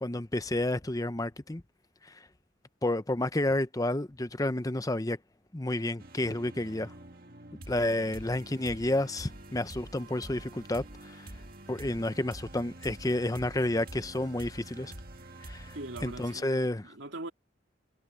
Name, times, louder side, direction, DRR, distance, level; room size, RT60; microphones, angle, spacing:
voice 1, 0.0-1.6 2.0-2.1 2.8-5.2 5.5-6.9 7.7-11.3 11.7-14.9 15.4-15.8 16.0-16.9, left 1 dB, 20° left, 0.7 m, -30 dB
sound 1, 6.0-16.4, right 1 dB, 45° right, 2.0 m, -46 dB
voice 2, 15.7-17.3, right 2 dB, 65° right, 2.9 m, -41 dB
head